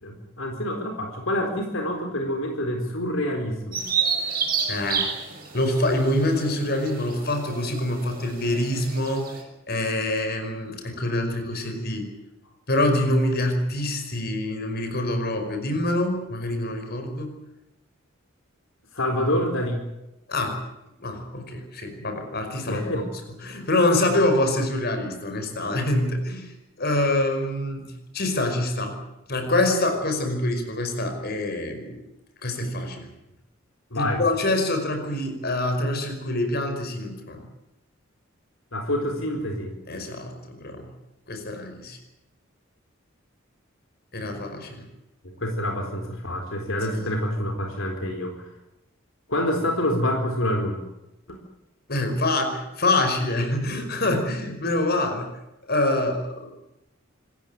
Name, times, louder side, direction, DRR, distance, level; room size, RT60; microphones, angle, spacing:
voice 1, 0.0-3.8 18.9-19.8 22.7-23.0 33.9-34.2 38.7-39.7 45.2-48.5 49.3-50.8 51.3-51.4, left 1 dB, 75° left, 3 dB, 4.2 m, -27 dB
Bird vocalization bird call bird song, 3.7-9.4, right 6 dB, 45° right, 7.8 m, -30 dB
voice 2, 4.7-5.1 5.5-9.3 9.7-12.1 12.7-17.3 20.3-20.6 21.0-23.1 23.4-27.9 28.1-29.0 29.3-32.0 32.4-33.1 33.9-37.5 39.9-40.9 41.3-42.0 44.1-44.9 46.9-47.1 51.9-55.3 55.6-56.5, left 1 dB, 50° left, 5 dB, 5.3 m, -25 dB
26.5 x 15.0 x 9.3 m, 0.93 s
head